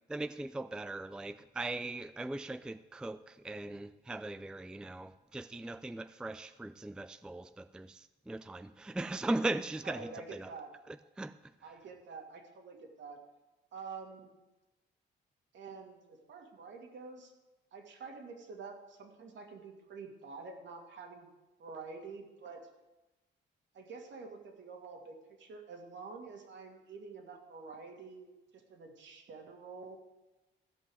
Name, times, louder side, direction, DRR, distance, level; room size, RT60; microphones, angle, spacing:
voice 1, 0.0-10.5 10.9-11.5, right 2 dB, 5° right, 12 dB, 0.4 m, -39 dB
voice 2, 9.8-10.7 11.6-13.2 13.7-14.3 15.5-17.3 17.7-21.3 21.6-22.6 23.7-30.0, right 4 dB, 65° right, 2 dB, 2.4 m, -48 dB
14.5 x 5.6 x 7.9 m, 1.1 s
cardioid pair, 90°, 20 cm